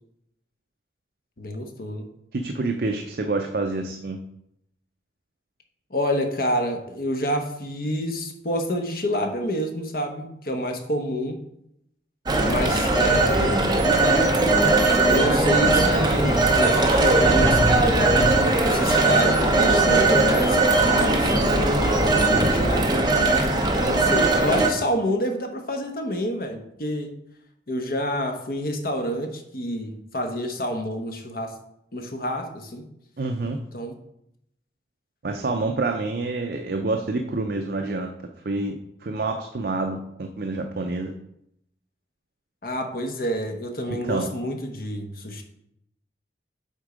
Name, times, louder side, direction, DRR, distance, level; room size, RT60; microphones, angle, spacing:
voice 1, 1.4-2.1 5.9-11.4 12.4-13.7 15.0-18.2 18.6-22.9 23.7-27.1 27.7-31.5 31.9-32.9 33.7-34.0 35.8-35.9 42.6-45.4, equal, 55° left, 4 dB, 1.0 m, -28 dB
voice 2, 2.3-4.2 33.2-33.6 35.2-38.1 38.4-38.8 39.0-41.1 43.9-44.3, right 3 dB, 60° right, 4 dB, 0.5 m, -27 dB
Telephone, 12.3-24.7, right 2 dB, 25° right, 0.8 m, -19 dB
8.2 x 3.7 x 5.0 m, 0.77 s
head